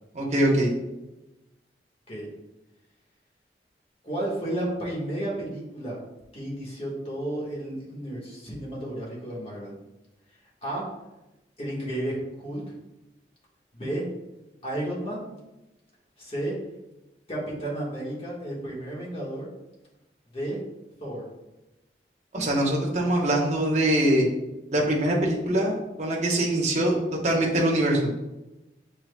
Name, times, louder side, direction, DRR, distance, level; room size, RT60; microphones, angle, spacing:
voice 1, 0.1-0.7 22.3-24.2 24.7-27.0 27.2-28.1, right 1 dB, 40° right, -3 dB, 1.0 m, -23 dB
voice 2, 4.0-6.0 6.3-9.7 10.6-10.9 11.6-12.6 13.7-14.1 14.6-15.3 16.2-16.6 17.3-19.5 20.3-20.6 21.0-21.2, right 1 dB, 35° left, -5 dB, 1.4 m, -32 dB
7.1 x 3.3 x 2.2 m, 0.99 s
head